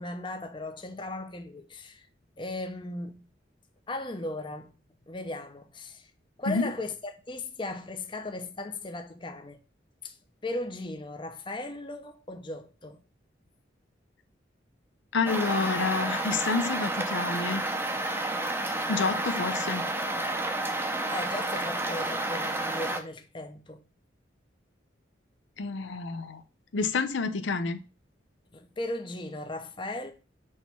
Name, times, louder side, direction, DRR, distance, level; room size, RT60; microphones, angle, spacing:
voice 1, 0.0-2.1 2.4-3.3 3.9-4.7 5.1-6.1 6.4-9.6 10.0-10.2 10.4-13.0 21.1-23.8 28.5-30.1, left 2 dB, 25° left, 0.7 m, -37 dB
voice 2, 15.1-17.6 18.9-19.9 25.6-26.4 26.7-27.8, left 4 dB, 75° left, 0.6 m, -29 dB
sound 1, 15.3-23.0, right 2 dB, 10° right, 0.6 m, -30 dB
6.3 x 3.1 x 5.5 m
head